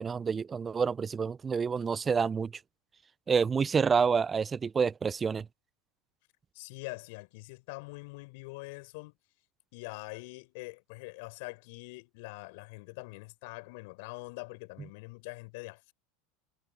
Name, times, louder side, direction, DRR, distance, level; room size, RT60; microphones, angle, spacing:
voice 1, 0.0-2.5 3.3-5.5, right 6 dB, 25° right, 0.5 m, -28 dB
voice 2, 6.5-9.1 9.7-15.9, left 27 dB, 65° left, 5.5 m, -44 dB
hypercardioid pair, 85°, 0 cm